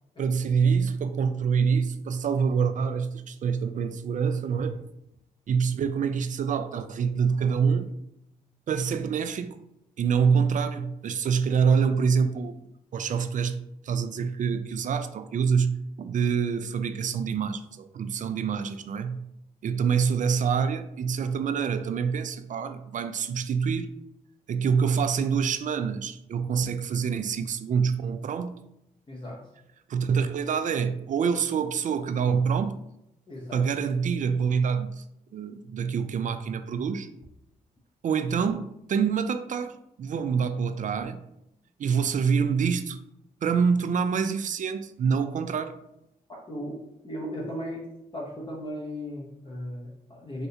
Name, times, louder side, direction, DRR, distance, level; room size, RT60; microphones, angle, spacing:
voice 1, 0.2-4.8 5.5-7.9 8.7-9.6 10.0-12.6 12.9-13.6 13.8-19.2 19.6-23.9 24.5-28.6 29.9-32.8 33.5-35.0 35.3-37.1 38.0-41.2 41.8-43.0 43.4-45.8, right 6 dB, 50° right, 0.4 m, -26 dB
voice 2, 29.1-29.4 33.3-33.6 46.5-46.8 47.0-47.8 48.1-50.5, equal, 30° left, 0.9 m, -36 dB
3.2 x 2.6 x 2.8 m
hypercardioid pair, 45°, 18 cm